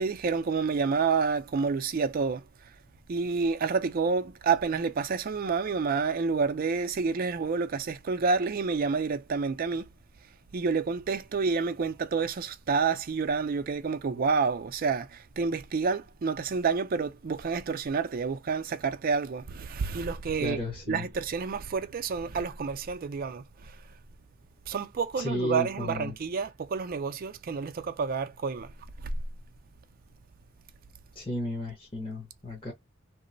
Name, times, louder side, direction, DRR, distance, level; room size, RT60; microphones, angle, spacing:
voice 1, 0.0-2.5 3.1-9.9 10.5-23.8 24.7-28.7 29.0-29.1, right 5 dB, 45° right, 0.4 m, -29 dB
voice 2, 20.4-21.1 25.2-26.1 31.1-32.7, left 1 dB, 25° left, 0.9 m, -33 dB
2.9 x 2.0 x 2.6 m
head